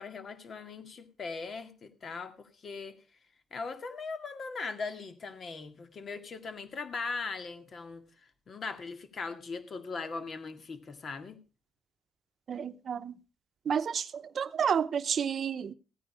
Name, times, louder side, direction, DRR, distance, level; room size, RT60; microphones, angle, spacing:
voice 1, 0.0-3.0 3.5-11.4, left 4 dB, 50° left, 2.0 m, -40 dB
voice 2, 12.5-13.2 13.7-15.7, right 7 dB, 55° right, 0.8 m, -30 dB
15.0 x 9.4 x 4.8 m
cardioid pair, 90°, 0 cm